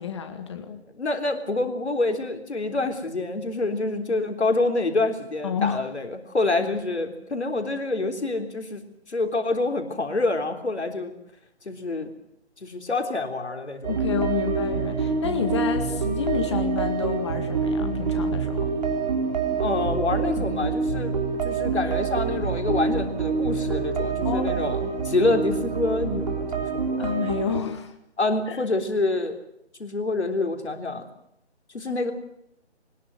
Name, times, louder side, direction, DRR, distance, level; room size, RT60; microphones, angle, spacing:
voice 1, 0.0-0.8 5.4-5.8 13.9-18.7 24.2-24.6 27.0-27.9 28.5-28.6, left 7 dB, 25° left, 7 dB, 1.9 m, -29 dB
voice 2, 0.9-8.8 9.1-11.1 11.7-12.1 12.6-13.9 19.6-21.1 21.4-27.0 28.2-29.4 29.8-31.1 31.7-32.1, left 2 dB, 70° left, 5 dB, 3.7 m, -27 dB
sound 1, 13.8-27.6, right 5 dB, 35° right, 3.7 m, -26 dB
22.0 x 20.5 x 8.0 m, 0.78 s
figure-of-eight pair, 155°, 34 cm